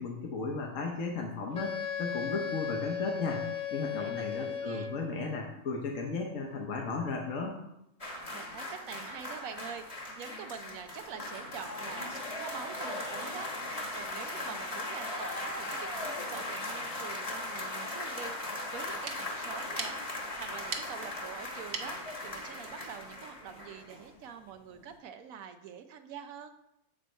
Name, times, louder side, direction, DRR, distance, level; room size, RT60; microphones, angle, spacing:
voice 1, 0.0-3.4 3.7-7.5, left 4 dB, 70° left, 0 dB, 1.4 m, -35 dB
Wind instrument woodwind instrument, 1.5-5.1, left 7 dB, 45° left, 0.6 m, -36 dB
voice 2, 4.0-5.0 8.3-26.5, right 7 dB, 85° right, 7 dB, 1.1 m, -46 dB
sound 1, 8.0-24.3 24.6-24.7, left 2 dB, 30° left, 1.1 m, -38 dB
sound 2, 18.8-24.1, right 4 dB, 45° right, 0.8 m, -44 dB
7.5 x 5.1 x 4.5 m, 0.82 s
omnidirectional pair, 1.4 m